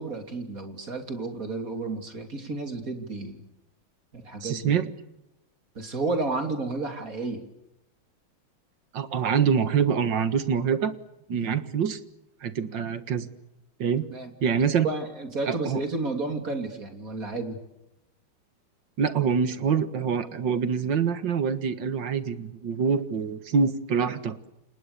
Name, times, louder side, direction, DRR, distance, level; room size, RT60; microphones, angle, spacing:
voice 1, 0.0-3.4 4.1-4.8 5.7-7.4 11.3-11.6 14.1-14.3 14.8-17.6, right 3 dB, 40° right, 6 dB, 3.5 m, -32 dB
voice 2, 4.4-4.9 8.9-10.9 11.3-12.0 12.4-13.3 13.8-14.0 14.4-14.9 15.5-15.8 19.0-24.4, right 6 dB, 60° right, 12 dB, 2.2 m, -25 dB
29.5 x 26.5 x 6.9 m, 0.90 s
omnidirectional pair, 2.3 m